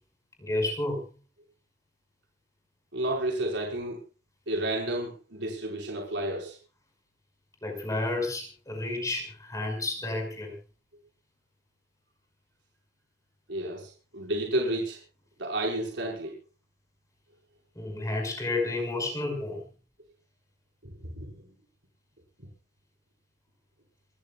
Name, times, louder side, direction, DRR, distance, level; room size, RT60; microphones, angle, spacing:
voice 1, 0.4-1.1 7.6-10.5 17.7-19.6, left 2 dB, 20° left, 4 dB, 5.8 m, -31 dB
voice 2, 2.9-4.0 4.5-6.6 13.5-15.0 15.4-16.3 20.8-21.3, right 1 dB, 80° right, 0 dB, 5.2 m, -31 dB
27.5 x 14.5 x 2.4 m, 0.33 s
head